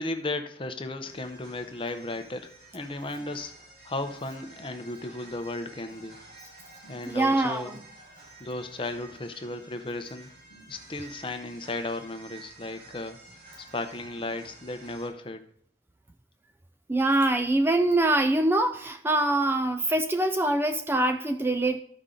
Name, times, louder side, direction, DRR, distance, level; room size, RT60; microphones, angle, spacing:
voice 1, 0.0-6.2 6.9-7.8 8.4-10.3 10.7-13.2 13.7-15.5, left 2 dB, 30° left, 8 dB, 0.7 m, -35 dB
sound 1, 1.0-15.1, right 2 dB, 60° right, 4.4 m, -51 dB
voice 2, 7.1-7.8 16.9-21.8, right 2 dB, 15° right, 7 dB, 0.3 m, -24 dB
13.5 x 5.5 x 3.8 m, 0.66 s
head